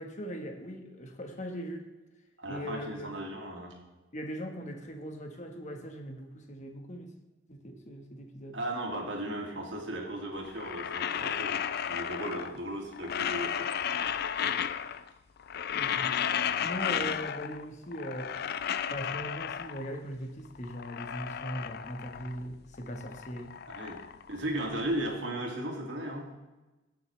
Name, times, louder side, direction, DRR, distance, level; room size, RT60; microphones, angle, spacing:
voice 1, 0.0-1.9 2.5-3.1 4.1-7.1 7.5-8.6 15.7-16.1 16.6-18.4 18.9-23.5, equal, 40° left, 4 dB, 1.5 m, -40 dB
voice 2, 2.4-3.7 8.5-11.6 11.8-13.7 23.7-24.0 24.3-26.3, right 1 dB, 80° right, 0 dB, 2.4 m, -36 dB
sound 1, 10.5-12.6 12.9-15.1 15.4-17.6 17.9-20.0 20.5-22.5 22.7-24.9, left 8 dB, 60° left, 0.4 m, -33 dB
16.5 x 6.7 x 3.3 m, 1.1 s
head